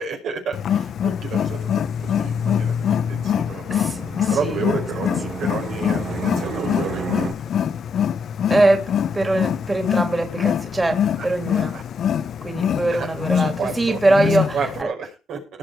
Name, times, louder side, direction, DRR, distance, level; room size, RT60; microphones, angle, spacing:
voice 1, 0.0-3.9 4.3-7.5 11.2-11.3 11.7-11.8 12.9-15.4, right 5 dB, 75° right, 2 dB, 5.5 m, -31 dB
Wild animals, 0.5-14.8, left 9 dB, 65° left, 0.8 m, -24 dB
Fixed-wing aircraft airplane, 2.4-7.3, right 6 dB, 55° right, 4.6 m, -34 dB
voice 2, 3.7-4.6 8.5-11.7 12.4-14.9, right 2 dB, 20° right, 5 dB, 2.9 m, -22 dB
18.5 x 6.7 x 4.8 m, 0.32 s
cardioid pair, 90°, 0 cm